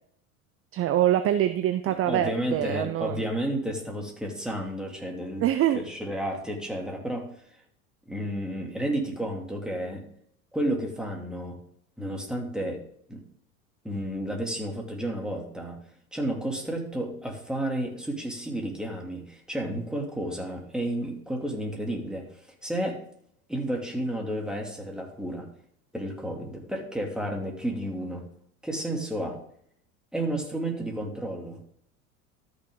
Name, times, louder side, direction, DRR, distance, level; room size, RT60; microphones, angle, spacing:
voice 1, 0.7-3.2 5.4-5.8, right 12 dB, 30° right, 10 dB, 0.7 m, -24 dB
voice 2, 2.0-5.5 5.7-7.3 8.1-10.0 10.5-11.6 12.0-12.8 13.1-13.2 13.8-15.8 16.1-22.3 22.6-23.0 23.5-25.5 25.9-28.2 28.6-29.4 30.1-31.6, right 1 dB, ahead, 0 dB, 2.8 m, -31 dB
13.0 x 6.1 x 3.8 m, 0.66 s
hypercardioid pair, 85°, 43 cm